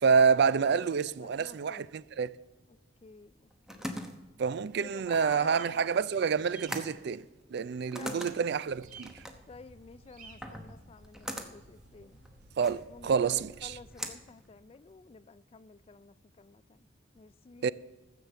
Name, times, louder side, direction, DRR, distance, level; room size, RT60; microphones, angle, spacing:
voice 1, 0.0-2.3 4.4-7.3 7.5-9.1 12.6-13.8 17.6-17.7, right 6 dB, 60° right, 0.4 m, -28 dB
voice 2, 0.6-1.9 2.7-3.9 4.8-5.8 7.9-8.3 9.5-12.2 12.9-16.9 17.1-17.7, left 4 dB, 30° left, 0.3 m, -51 dB
sound 1, 3.2-15.2, equal, 5° right, 0.9 m, -44 dB
sound 2, 5.3-5.7 6.3-6.7 8.8-9.1 10.1-10.4, right 5 dB, 45° right, 1.7 m, -50 dB
sound 3, 8.7-13.9, equal, 80° right, 2.2 m, -57 dB
15.0 x 7.3 x 6.8 m
head